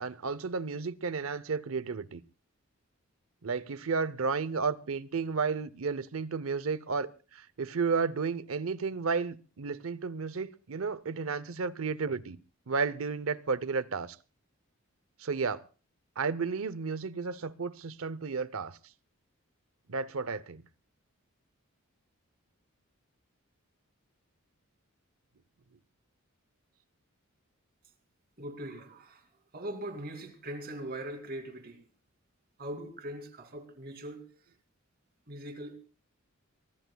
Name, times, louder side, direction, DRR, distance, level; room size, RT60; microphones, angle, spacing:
voice 1, 0.0-2.2 3.4-12.4 12.7-14.2 15.2-15.6 16.2-18.8 19.9-20.6, right 5 dB, 70° right, 0.7 m, -32 dB
voice 2, 28.4-31.9 32.6-34.6 35.3-35.8, right 1 dB, 45° right, 2.6 m, -41 dB
23.0 x 20.5 x 2.3 m
head